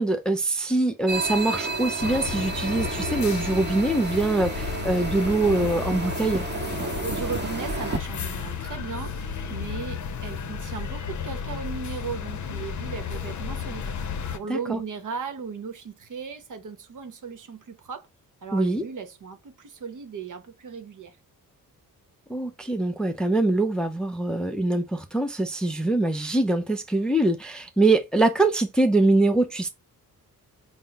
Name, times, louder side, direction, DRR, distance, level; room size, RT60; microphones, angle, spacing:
voice 1, 0.0-6.5 14.5-14.8 18.5-18.8 22.3-29.7, right 2 dB, ahead, 0.5 m, -23 dB
sound 1, 1.1-8.0, right 3 dB, 30° right, 0.9 m, -31 dB
sound 2, 2.0-14.4, left 7 dB, 50° left, 0.7 m, -33 dB
Bowed string instrument, 2.1-7.4, equal, 20° left, 0.9 m, -43 dB
voice 2, 7.0-13.9 14.3-18.1 18.4-21.2, right 6 dB, 55° right, 0.9 m, -36 dB
4.0 x 2.0 x 3.9 m
cardioid pair, 80°, 36 cm